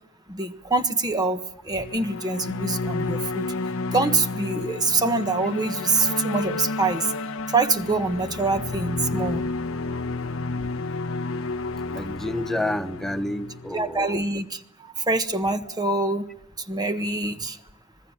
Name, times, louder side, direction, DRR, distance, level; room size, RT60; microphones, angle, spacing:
voice 1, 0.3-3.5 3.9-7.1 7.5-9.5 13.7-14.6 15.0-16.2 16.7-17.6, right 3 dB, 20° right, 1.4 m, -25 dB
sound 1, 1.7-14.2, left 3 dB, 75° left, 1.0 m, -31 dB
voice 2, 11.9-14.2, left 1 dB, ahead, 0.9 m, -30 dB
25.5 x 21.0 x 7.3 m
head